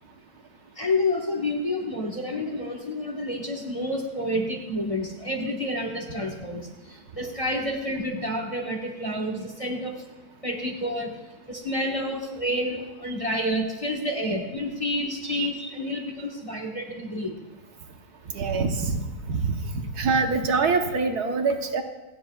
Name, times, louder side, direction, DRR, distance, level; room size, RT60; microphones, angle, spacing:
voice 1, 0.8-6.7 7.1-10.0 10.4-11.1 11.5-17.3, left 1 dB, 20° left, 1 dB, 1.3 m, -29 dB
voice 2, 18.3-19.6 20.0-21.8, right 4 dB, 75° right, 4 dB, 1.5 m, -24 dB
28.0 x 9.6 x 2.3 m, 1.1 s
omnidirectional pair, 1.7 m